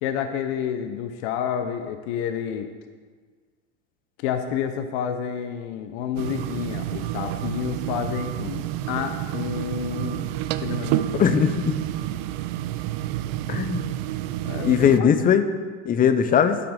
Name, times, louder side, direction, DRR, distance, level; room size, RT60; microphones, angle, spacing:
voice 1, 0.0-2.7 4.2-10.3 10.6-11.1 14.4-15.1, left 8 dB, 60° left, 7 dB, 0.8 m, -29 dB
sound 1, 6.2-15.0, right 14 dB, 55° right, 0.5 m, -29 dB
voice 2, 11.1-11.8 13.5-13.9 14.6-15.4 15.8-16.6, left 8 dB, 25° left, 10 dB, 0.7 m, -19 dB
12.5 x 5.8 x 5.2 m, 1.5 s
supercardioid pair, 115°, 37 cm